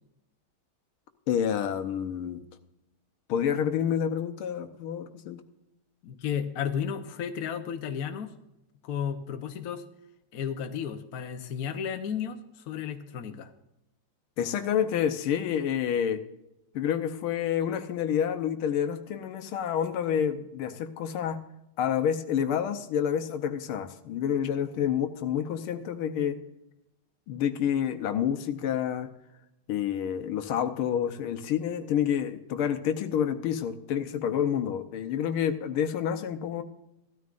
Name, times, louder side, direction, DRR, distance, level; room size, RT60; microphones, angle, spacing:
voice 1, 1.3-2.4 3.3-5.4 14.4-16.2 16.8-21.4 21.8-26.4 27.3-29.1 29.7-36.6, left 9 dB, 85° left, 8 dB, 1.7 m, -28 dB
voice 2, 6.0-8.3 8.8-9.8 10.3-12.4 12.7-13.5, left 8 dB, 55° left, 6 dB, 1.2 m, -33 dB
15.5 x 13.0 x 2.5 m, 0.89 s
omnidirectional pair, 2.3 m